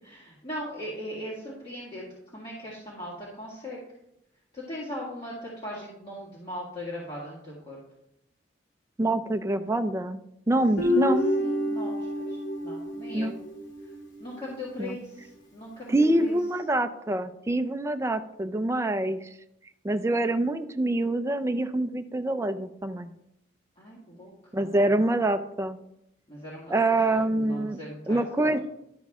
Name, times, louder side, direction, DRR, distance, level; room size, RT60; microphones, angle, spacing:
voice 1, 0.0-2.1 2.3-3.8 4.5-7.8 10.8-11.0 11.4-13.4 14.2-16.4 23.8-24.3 24.6-24.8 26.3-28.5, equal, 30° left, -7 dB, 2.0 m, -39 dB
voice 2, 9.0-10.2 10.5-11.2 13.1-13.4 14.8-15.0 15.9-19.2 19.8-23.1 24.5-25.8 26.7-27.8 28.1-28.6, right 2 dB, 15° right, 8 dB, 0.5 m, -25 dB
Guitar, 10.8-14.1, left 1 dB, 80° left, 2.2 m, -28 dB
11.5 x 6.3 x 3.6 m, 0.82 s
head